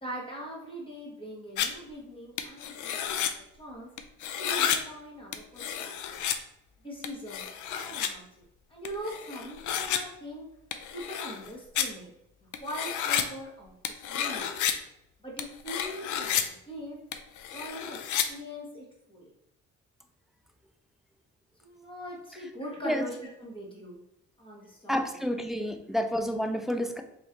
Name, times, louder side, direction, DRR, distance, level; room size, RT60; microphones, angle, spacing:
voice 1, 0.0-3.2 3.6-3.9 4.4-6.2 6.8-8.3 8.7-10.5 10.9-12.1 12.4-13.7 14.1-14.5 15.2-17.0 17.5-18.0 18.3-19.3 21.6-24.0 24.4-25.2, equal, 15° left, -3 dB, 1.4 m, -41 dB
sound 1, 1.6-1.7 2.4-3.3 4.0-4.8 5.3-6.4 7.0-8.1 8.9-10.0 10.7-11.5 11.8-11.9 12.5-13.2 13.8-14.7 15.4-16.4 17.1-18.3, left 9 dB, 80° left, 0.5 m, -31 dB
voice 2, 24.9-27.0, equal, ahead, 6 dB, 0.3 m, -29 dB
3.0 x 3.0 x 3.7 m, 0.80 s
cardioid pair, 90°, 30 cm